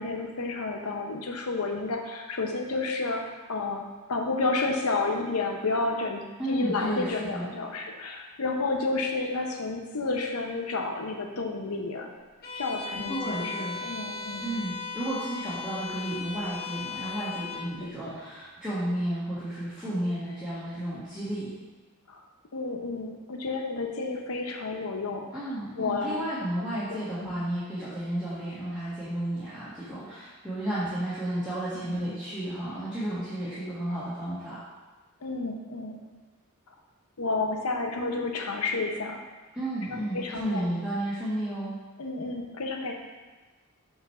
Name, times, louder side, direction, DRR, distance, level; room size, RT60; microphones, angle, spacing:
voice 1, 0.0-3.2 3.5-12.1 12.5-14.5 17.8-17.9 22.1-22.2 22.5-26.2 26.9-27.3 31.7-32.0 35.2-36.0 36.7-36.8 37.2-39.2 39.9-40.7 42.0-42.9, left 3 dB, 85° left, 2 dB, 0.8 m, -31 dB
voice 2, 6.4-7.5 13.1-13.7 14.4-21.5 25.3-34.6 39.5-41.8, right 1 dB, 5° right, -12 dB, 1.2 m, -32 dB
Bowed string instrument, 12.4-17.7, left 5 dB, 45° left, 0.8 m, -37 dB
6.2 x 3.2 x 5.4 m, 1.3 s
head